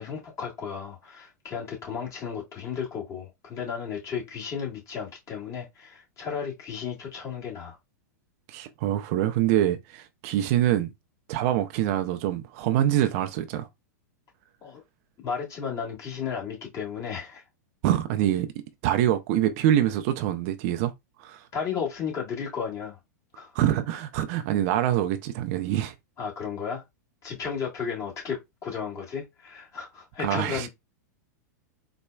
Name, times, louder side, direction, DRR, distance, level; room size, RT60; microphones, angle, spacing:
voice 1, 0.0-7.8 14.6-14.8 15.2-17.4 21.5-23.0 23.3-23.5 26.2-26.8 27.2-30.7, left 6 dB, 35° left, 1.5 m, -34 dB
voice 2, 8.5-10.9 11.3-13.7 17.8-18.5 18.8-20.9 21.2-21.4 23.5-25.9 30.2-30.7, right 12 dB, 50° right, 0.5 m, -25 dB
4.2 x 2.1 x 2.2 m
hypercardioid pair, 110°, 10 cm